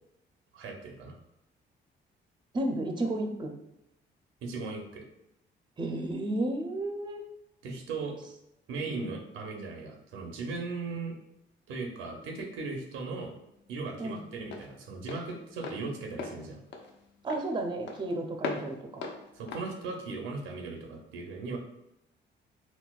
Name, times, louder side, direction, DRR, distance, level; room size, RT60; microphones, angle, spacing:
voice 1, 0.5-1.1 4.4-5.0 7.6-8.2 8.7-11.1 11.7-13.3 13.7-16.6 19.3-21.6, right 3 dB, 90° right, 2 dB, 0.6 m, -38 dB
voice 2, 2.5-3.5 5.8-7.2 8.8-9.1 14.0-14.2 17.2-19.0, right 1 dB, 25° right, 3 dB, 0.5 m, -32 dB
Walk footsteps, 12.2-20.9, left 3 dB, 65° left, 0.5 m, -42 dB
4.0 x 2.2 x 2.3 m, 0.84 s
cardioid pair, 90°, 20 cm